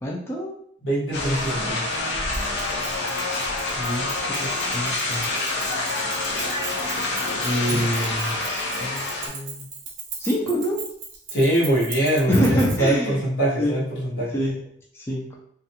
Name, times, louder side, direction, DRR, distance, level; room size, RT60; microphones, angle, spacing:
voice 1, 0.0-0.5 3.8-5.3 7.4-9.7 10.2-10.8 12.3-13.2 13.6-13.8 14.3-14.6 14.9-15.4, equal, 15° left, -3 dB, 0.3 m, -26 dB
voice 2, 0.8-1.8 7.7-7.8 11.3-14.4, right 1 dB, 85° left, -5 dB, 1.1 m, -23 dB
sound 1, 1.1-9.3, left 2 dB, 65° left, 0.5 m, -27 dB
Keys jangling, 2.3-12.9, right 5 dB, 80° right, 0.7 m, -38 dB
2.4 x 2.1 x 2.7 m, 0.65 s
head